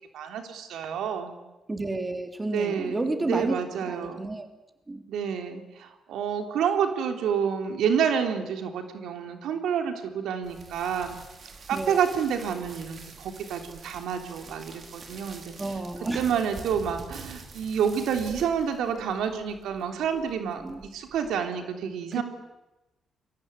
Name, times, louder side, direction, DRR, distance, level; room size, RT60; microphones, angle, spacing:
voice 1, 0.1-1.3 2.5-4.2 5.1-11.2 11.7-15.5 16.1-22.2, right 7 dB, 85° right, 5 dB, 3.4 m, -29 dB
voice 2, 1.7-4.5 4.9-5.0 11.7-12.0 15.6-16.3 20.1-20.2 20.6-20.8 22.1-22.2, right 2 dB, 20° right, 6 dB, 3.1 m, -31 dB
sound 1, 10.4-21.4, right 4 dB, 45° right, 5.2 m, -46 dB
29.5 x 22.5 x 8.3 m, 1.0 s
cardioid pair, 110°, 0 cm